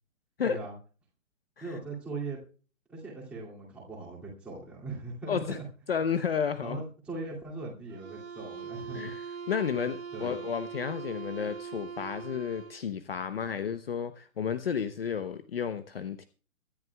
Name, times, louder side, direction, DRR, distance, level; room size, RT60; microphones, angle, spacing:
voice 1, 1.6-2.4 2.9-5.6 6.6-9.1 10.1-10.3, right 3 dB, 5° right, -7 dB, 2.5 m, -39 dB
voice 2, 5.9-6.8 8.9-16.2, left 7 dB, 45° left, 10 dB, 0.9 m, -32 dB
sound 1, 7.9-12.9, right 6 dB, 75° right, 2.2 m, -41 dB
23.0 x 11.0 x 2.3 m, 0.38 s
hypercardioid pair, 180°, 40 cm